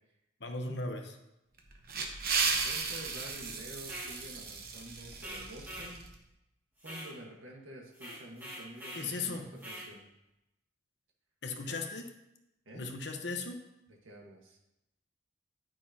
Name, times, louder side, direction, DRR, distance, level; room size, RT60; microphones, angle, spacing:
voice 1, 0.4-1.2 8.9-9.5 11.4-12.1 12.7-13.6, left 3 dB, 55° left, 4 dB, 1.0 m, -37 dB
sound 1, 1.6-6.1, right 5 dB, 50° right, 1.0 m, -35 dB
voice 2, 2.4-6.0 6.8-10.1 11.6-11.8 12.6-12.9 13.9-14.6, right 1 dB, 85° right, -1 dB, 1.6 m, -49 dB
sound 2, 3.8-4.1 5.2-5.9 6.8-7.1 7.9-9.1 9.6-9.9, right 1 dB, 10° right, 2.1 m, -44 dB
9.4 x 9.4 x 2.8 m, 0.88 s
head